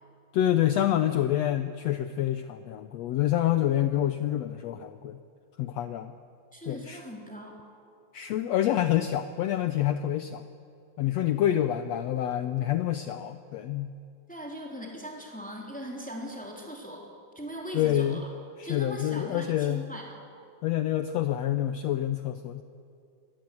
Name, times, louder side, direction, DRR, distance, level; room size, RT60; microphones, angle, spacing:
voice 1, 0.3-5.2 5.6-6.2 6.7-7.0 8.1-10.5 11.0-13.9 17.7-18.2 18.6-19.8 20.6-22.6, left 12 dB, 90° left, 10 dB, 1.4 m, -27 dB
voice 2, 6.5-7.6 11.5-11.6 14.3-17.1 17.3-18.3 18.6-20.2, equal, ahead, -1 dB, 3.2 m, -40 dB
24.0 x 18.0 x 8.4 m, 2.4 s
omnidirectional pair, 3.9 m